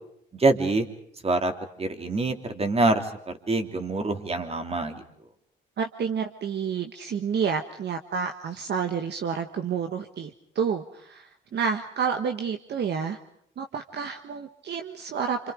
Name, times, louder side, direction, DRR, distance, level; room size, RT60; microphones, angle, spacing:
voice 1, 0.3-0.9 1.2-1.5 1.8-5.0, right 2 dB, 30° right, 6 dB, 3.2 m, -25 dB
voice 2, 5.8-13.2 13.6-15.4, right 6 dB, 60° right, 5 dB, 1.5 m, -29 dB
28.5 x 27.0 x 5.1 m, 0.71 s
cardioid pair, 90°, 20 cm